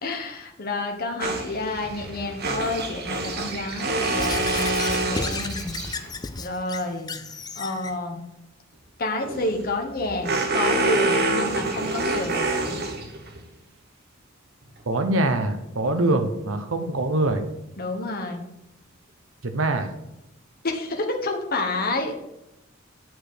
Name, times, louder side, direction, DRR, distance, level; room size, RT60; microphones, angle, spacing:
voice 1, 0.0-5.8 6.4-7.2 7.5-8.3 9.0-12.8 16.0-16.3 17.8-18.5 20.6-22.1, left 2 dB, 50° left, 3 dB, 1.2 m, -29 dB
sound 1, 1.2-6.2 9.2-13.4, right 2 dB, 55° right, 1.4 m, -27 dB
Squeak / Writing, 4.2-7.9, left 3 dB, 20° left, 0.5 m, -33 dB
voice 2, 14.9-17.5 19.4-19.9, right 2 dB, 80° right, 7 dB, 0.9 m, -24 dB
9.4 x 5.0 x 6.4 m, 0.89 s
head